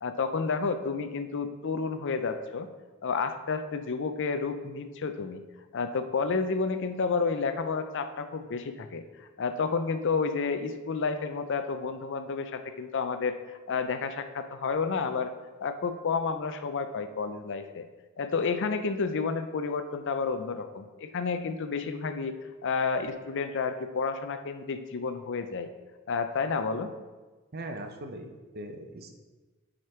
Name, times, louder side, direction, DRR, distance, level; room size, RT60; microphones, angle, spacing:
voice 1, 0.0-2.7 3.0-5.4 5.7-15.3 15.6-17.8 18.2-22.4 22.6-25.7 26.1-26.9, left 4 dB, 60° left, 9 dB, 0.5 m, -30 dB
voice 2, 27.5-29.1, right 1 dB, 45° right, 5 dB, 0.7 m, -40 dB
7.9 x 5.1 x 4.4 m, 1.3 s
head